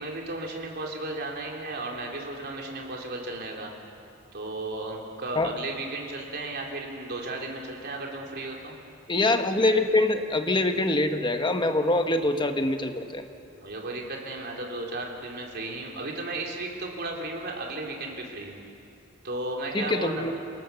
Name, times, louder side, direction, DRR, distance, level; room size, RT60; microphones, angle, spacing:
voice 1, 0.0-3.7 4.3-8.8 13.6-18.6 19.2-20.3, right 2 dB, 55° right, 0 dB, 3.7 m, -34 dB
voice 2, 9.1-13.2 19.7-20.3, left 2 dB, 25° left, 6 dB, 1.3 m, -24 dB
28.0 x 18.0 x 7.1 m, 2.6 s
head